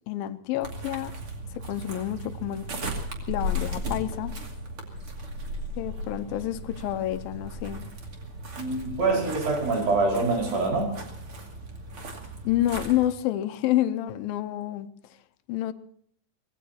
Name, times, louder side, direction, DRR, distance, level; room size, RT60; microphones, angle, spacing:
voice 1, 0.1-1.1 1.6-2.7 3.3-4.3 5.8-7.8 12.5-14.9 15.5-15.7, left 13 dB, 90° left, 11 dB, 2.6 m, -28 dB
sound 1, 0.6-13.1, equal, 40° right, 3.1 m, -36 dB
voice 2, 8.6-10.9, right 3 dB, 85° right, -1 dB, 6.8 m, -25 dB
25.0 x 18.5 x 2.9 m, 0.64 s
omnidirectional pair, 4.0 m